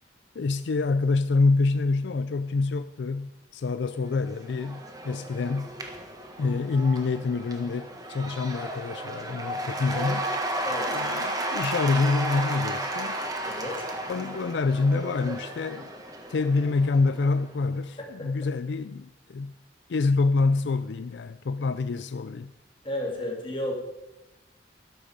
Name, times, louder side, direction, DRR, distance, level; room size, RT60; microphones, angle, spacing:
voice 1, 0.4-5.7 6.4-10.3 10.9-13.2 14.1-15.9 16.3-19.5 19.9-22.5, left 3 dB, 75° left, 0.4 m, -26 dB
Cheering / Applause / Crowd, 4.1-17.5, right 1 dB, 20° right, 1.6 m, -33 dB
voice 2, 10.6-11.0 13.4-13.9 18.0-18.3 22.8-23.7, left 1 dB, 30° left, 2.9 m, -33 dB
12.5 x 11.5 x 5.1 m
head